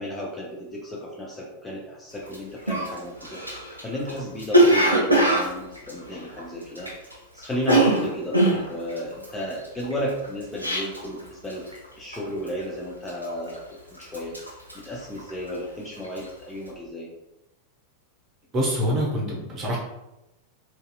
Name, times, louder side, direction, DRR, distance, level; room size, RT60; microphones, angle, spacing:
voice 1, 0.0-3.4 3.8-6.9 7.3-14.3 14.7-17.1, equal, 10° left, -4 dB, 0.5 m, -33 dB
Cough, 2.3-2.4 2.7-7.1 7.4-11.2 11.5-11.8 12.1-12.6 13.1-13.7 14.0-15.6 16.0-16.3, right 1 dB, 85° right, 0.5 m, -22 dB
voice 2, 18.5-19.8, equal, 30° right, -3 dB, 0.8 m, -25 dB
2.6 x 2.4 x 2.2 m, 0.91 s
figure-of-eight pair, 90°, 0 cm